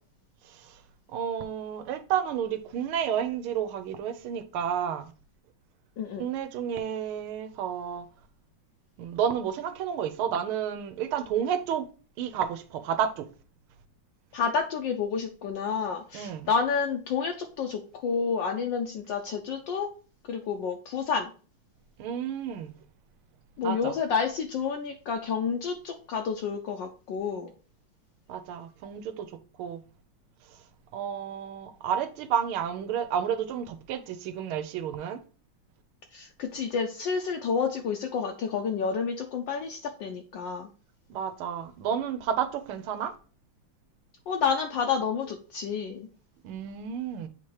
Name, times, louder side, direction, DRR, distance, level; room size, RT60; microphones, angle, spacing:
voice 1, 0.4-0.8 1.1-5.1 6.2-8.1 9.0-11.9 12.2-13.3 16.1-16.5 22.0-22.7 23.6-23.9 28.3-29.8 30.5-30.6 30.9-35.2 41.1-43.1 46.4-47.3, right 8 dB, 85° right, 1.6 m, -31 dB
voice 2, 14.3-19.9 20.2-21.3 23.6-27.5 36.1-40.7 44.3-46.1, left 6 dB, 70° left, 1.2 m, -29 dB
7.9 x 2.9 x 4.6 m
omnidirectional pair, 2.3 m